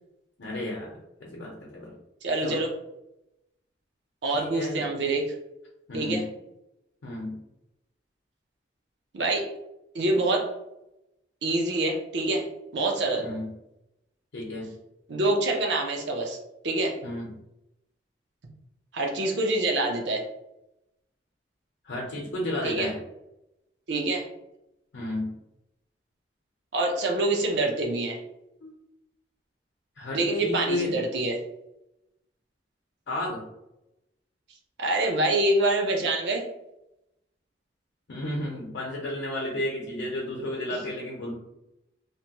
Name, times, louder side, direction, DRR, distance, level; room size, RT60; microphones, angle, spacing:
voice 1, 0.4-0.9 1.2-2.0 2.4-2.6 4.3-4.8 5.9-6.3 7.0-7.4 13.2-13.5 14.3-14.7 17.0-17.3 21.8-23.0 24.9-25.4 28.6-28.7 30.0-31.0 33.1-33.4 38.1-41.3, left 1 dB, 85° left, -3 dB, 0.7 m, -32 dB
voice 2, 2.2-2.7 4.2-5.2 5.9-6.2 9.1-9.5 9.9-10.5 11.4-12.5 12.7-13.2 15.1-16.4 16.6-17.0 18.9-20.2 22.6-22.9 23.9-24.3 26.7-28.2 30.1-31.4 34.8-36.5, right 2 dB, 75° right, 1 dB, 0.6 m, -26 dB
2.9 x 2.2 x 2.9 m, 0.89 s
head